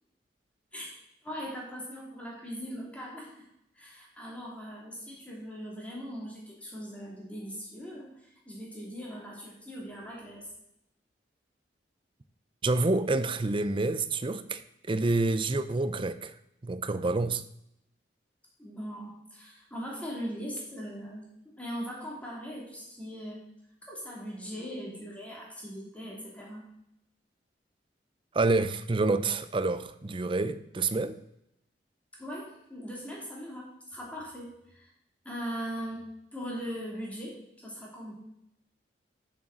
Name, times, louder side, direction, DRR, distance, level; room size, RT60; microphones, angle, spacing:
voice 1, 1.2-3.5 3.7-10.5 18.6-23.5 23.8-26.7 32.2-34.9 35.2-38.1, equal, 10° left, -3 dB, 3.0 m, -40 dB
voice 2, 12.6-14.6 14.9-16.3 16.6-17.4 28.3-31.2, right 3 dB, 30° right, 13 dB, 0.5 m, -28 dB
7.3 x 6.4 x 6.1 m, 0.79 s
head